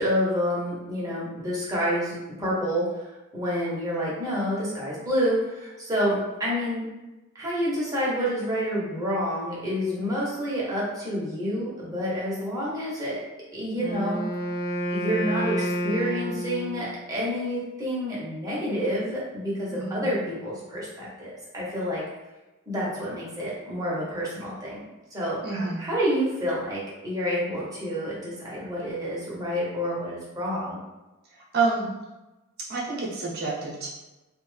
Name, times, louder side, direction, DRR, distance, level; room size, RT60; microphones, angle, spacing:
voice 1, 0.0-2.9 3.3-6.8 7.3-13.2 13.5-14.2 14.9-22.0 22.7-24.8 25.1-30.8, equal, 15° right, -7 dB, 0.9 m, -28 dB
Wind instrument woodwind instrument, 13.7-17.0, equal, 85° left, 0.7 m, -29 dB
voice 2, 19.7-20.1 25.4-25.8 31.4-31.9 32.7-33.9, right 4 dB, 50° right, -4 dB, 0.8 m, -28 dB
2.6 x 2.2 x 3.1 m, 1.0 s
head